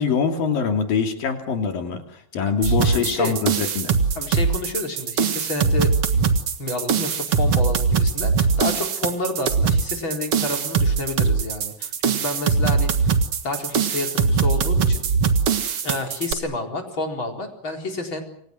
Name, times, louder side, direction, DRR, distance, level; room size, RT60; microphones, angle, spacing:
voice 1, 0.0-2.0 2.3-3.9, left 6 dB, 90° left, 4 dB, 4.7 m, -23 dB
voice 2, 2.4-3.4 4.1-6.3 6.6-13.2 13.4-15.0 15.8-18.2, left 2 dB, 35° left, 3 dB, 4.9 m, -29 dB
sound 1, 2.6-16.3, right 5 dB, 50° right, 2.2 m, -21 dB
29.0 x 25.5 x 6.4 m, 0.64 s
omnidirectional pair, 3.9 m